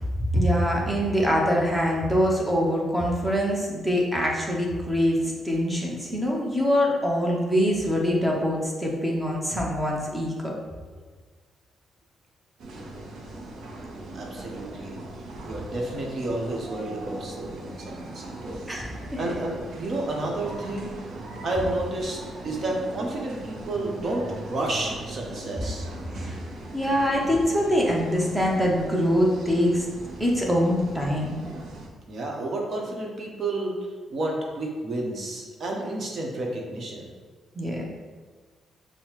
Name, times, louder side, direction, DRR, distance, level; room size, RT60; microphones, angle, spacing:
voice 1, 0.3-10.6 18.7-19.3 26.0-26.4 26.7-29.8 30.2-31.4 37.5-37.8, equal, 10° right, -2 dB, 0.8 m, -24 dB
sound 1, 12.6-31.9, right 2 dB, 75° right, 0.6 m, -40 dB
voice 2, 14.1-15.0 15.4-18.6 19.2-21.0 21.4-22.2 22.4-25.9 32.1-33.8 34.1-37.1, right 2 dB, 55° right, -1 dB, 0.9 m, -31 dB
5.5 x 2.1 x 3.1 m, 1.4 s
cardioid pair, 90°, 0 cm